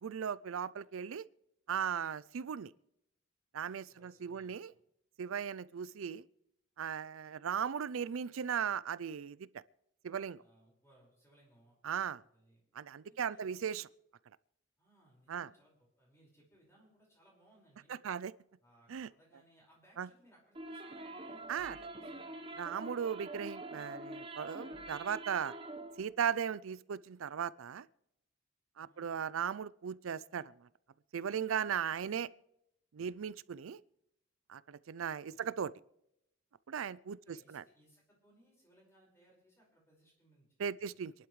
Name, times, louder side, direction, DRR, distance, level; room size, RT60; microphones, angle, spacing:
voice 1, 0.0-1.3 1.7-2.7 3.5-4.7 5.2-6.2 6.8-9.6 10.0-10.4 11.8-12.2 12.7-13.9 15.3-15.5 17.9-18.3 18.9-19.1 20.0-20.1 21.5-21.8 22.6-25.5 26.0-27.9 28.8-30.7 31.1-32.3 32.9-33.8 34.5-35.7 36.7-37.6 40.6-41.1, right 7 dB, 85° right, 0.4 m, -37 dB
voice 2, 3.9-4.8 10.4-11.8 12.3-12.6 13.0-13.5 14.8-18.2 18.6-22.3 28.8-29.2 35.1-35.5 37.2-40.5 40.8-40.9, right 1 dB, 15° left, 5.2 m, -67 dB
sound 1, 20.5-26.0, right 2 dB, 25° right, 1.1 m, -45 dB
26.5 x 11.5 x 3.2 m
head